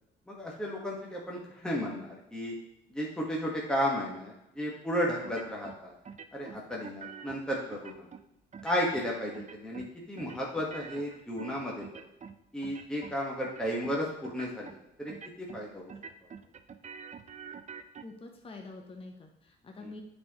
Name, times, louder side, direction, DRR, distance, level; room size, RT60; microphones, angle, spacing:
voice 1, 0.3-2.6 2.9-5.9 6.3-8.1 8.6-11.8 12.5-15.9 19.8-19.9, equal, 5° left, -4 dB, 1.4 m, -34 dB
sound 1, 5.2-5.8 6.0-7.4 7.7-8.2 8.5-9.1 9.3-9.9 10.2-12.4 12.6-13.2 13.4-13.9 14.2-14.8 15.1-15.6 15.9-18.0, right 6 dB, 35° right, 0.5 m, -46 dB
voice 2, 18.0-20.0, left 3 dB, 30° left, 3 dB, 0.9 m, -46 dB
9.1 x 4.3 x 3.0 m, 0.86 s
cardioid pair, 90°, 20 cm